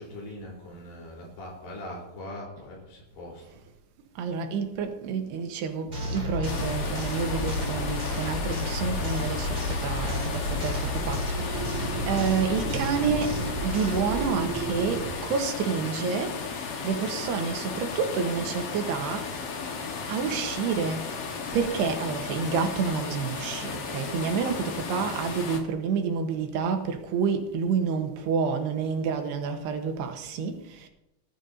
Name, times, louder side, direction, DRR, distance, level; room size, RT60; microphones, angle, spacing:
voice 1, 0.0-3.6, left 1 dB, 80° left, 5.9 m, -41 dB
voice 2, 4.2-13.4 13.6-16.4 16.8-19.3 20.1-21.1 21.5-30.9, right 6 dB, 85° right, 3.2 m, -29 dB
sound 1, 5.9-14.3, equal, 20° right, 1.3 m, -33 dB
sound 2, 5.9-15.2, equal, 55° right, 4.3 m, -34 dB
sound 3, 6.4-25.6, left 5 dB, 65° left, 1.5 m, -35 dB
19.0 x 11.0 x 2.7 m
omnidirectional pair, 4.7 m